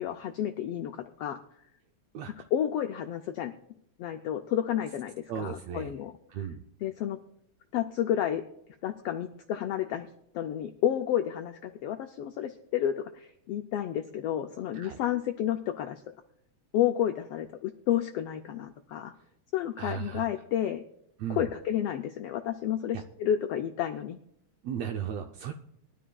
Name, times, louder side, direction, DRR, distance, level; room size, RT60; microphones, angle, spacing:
voice 1, 0.0-1.4 2.5-3.5 4.0-6.1 6.8-7.2 7.7-8.4 8.8-10.1 10.3-16.0 16.7-19.1 19.5-20.8 21.3-24.2, left 10 dB, 85° left, 6 dB, 1.3 m, -31 dB
voice 2, 5.3-5.9 6.3-6.6 14.7-15.0 19.8-20.3 21.2-21.5 22.9-23.0 24.6-25.5, right 9 dB, 75° right, 5 dB, 1.6 m, -35 dB
21.0 x 12.5 x 2.3 m, 0.78 s
omnidirectional pair, 3.3 m